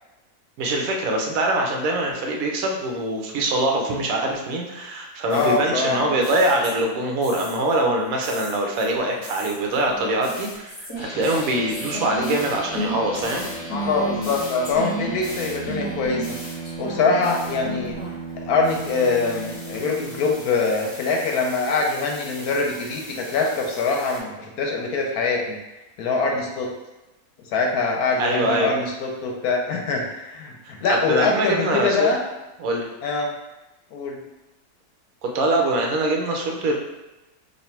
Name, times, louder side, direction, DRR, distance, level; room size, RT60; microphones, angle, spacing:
voice 1, 0.6-13.5 28.2-28.7 31.1-32.1 32.6-32.9 35.2-36.7, right 1 dB, 65° right, 1 dB, 1.1 m, -23 dB
voice 2, 5.3-6.1 13.7-16.4 16.8-17.9 18.4-25.6 26.0-26.7 27.5-32.2 33.0-33.3 33.9-34.2, left 4 dB, 75° left, 0 dB, 1.1 m, -23 dB
sound 1, 5.3-7.8 8.2-18.3 18.6-24.2, right 1 dB, 30° left, 0.7 m, -36 dB
sound 2, 11.0-20.3, right 3 dB, 50° left, 1.0 m, -35 dB
3.2 x 2.5 x 4.3 m, 1.0 s
omnidirectional pair, 1.7 m